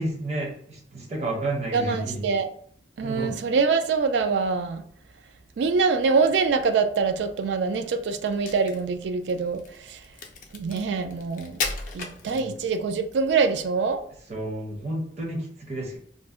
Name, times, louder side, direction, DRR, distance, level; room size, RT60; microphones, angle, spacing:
voice 1, 0.0-2.2 3.0-3.4 12.3-12.5 14.3-16.0, right 1 dB, 40° right, 0.6 m, -31 dB
voice 2, 1.7-2.5 3.0-4.8 5.6-10.0 10.5-11.6 11.9-14.0, right 5 dB, 80° right, 0.3 m, -24 dB
Crack, 8.3-12.9, left 4 dB, 45° left, 0.4 m, -35 dB
2.6 x 2.0 x 3.5 m
head